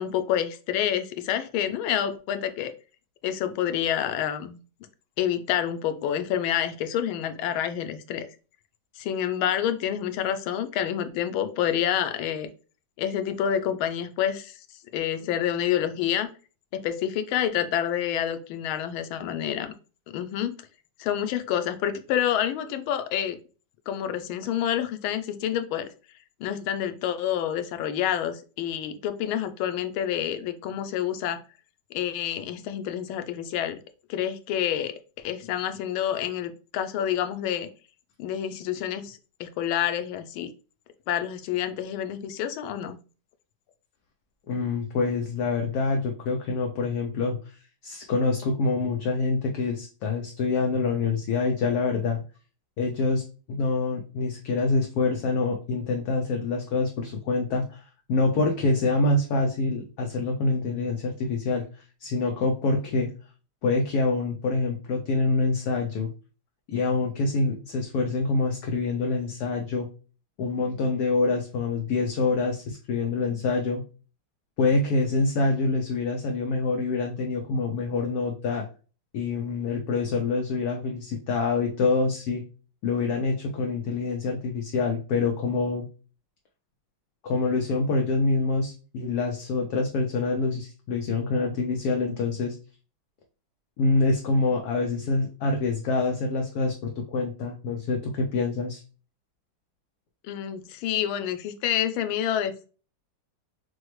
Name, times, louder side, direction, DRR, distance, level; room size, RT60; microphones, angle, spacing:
voice 1, 0.0-2.7 3.2-4.6 5.2-8.2 9.0-12.5 13.0-14.6 14.9-16.3 16.7-19.7 20.1-20.5 21.0-23.4 23.9-25.9 26.4-31.4 31.9-33.8 34.1-34.9 35.2-37.7 38.2-40.5 41.1-43.0 100.2-102.7, left 10 dB, 85° left, 9 dB, 1.4 m, -28 dB
voice 2, 44.5-47.5 47.8-52.2 52.8-57.8 58.1-61.6 62.0-63.1 63.6-66.1 66.7-69.9 70.4-73.8 74.6-78.6 79.1-82.4 82.8-85.9 87.2-92.6 93.8-98.8, left 3 dB, 70° left, 1 dB, 0.9 m, -26 dB
6.1 x 2.0 x 3.1 m, 0.36 s
omnidirectional pair, 2.2 m